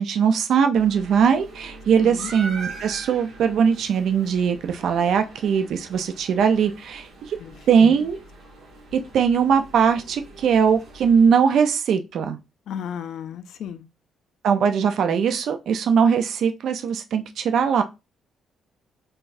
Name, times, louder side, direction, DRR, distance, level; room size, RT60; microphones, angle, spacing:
voice 1, 0.0-7.4 7.7-8.2 8.9-12.4 14.4-17.8, right 7 dB, 65° right, 0.5 m, -20 dB
sound 1, 0.7-11.3, right 3 dB, 80° right, 1.9 m, -42 dB
voice 2, 12.7-13.8, left 8 dB, 70° left, 0.5 m, -34 dB
3.9 x 3.9 x 2.5 m
cardioid pair, 135°, 0 cm